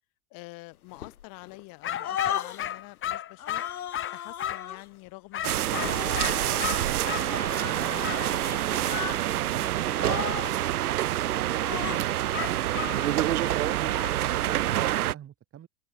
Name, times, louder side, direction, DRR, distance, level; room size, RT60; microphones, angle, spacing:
voice 1, 0.3-3.6 4.1-7.2 7.6-9.7 10.0-10.5, left 26 dB, 50° left, 3.0 m, -47 dB
sound 1, 0.9-1.6 1.9-2.8 3.4-4.9 5.7-9.2 9.5-9.7 9.9-10.7 11.5-12.1 12.7-14.1, left 10 dB, 85° left, 1.3 m, -37 dB
sound 2, 1.8-4.7 5.3-7.3 8.0-8.2 12.3-13.0, left 11 dB, 30° left, 1.5 m, -34 dB
sound 3, 5.4-15.1, right 13 dB, 85° right, 0.5 m, -27 dB
voice 2, 12.5-15.7, right 10 dB, 30° right, 5.2 m, -46 dB
hypercardioid pair, 90°, 43 cm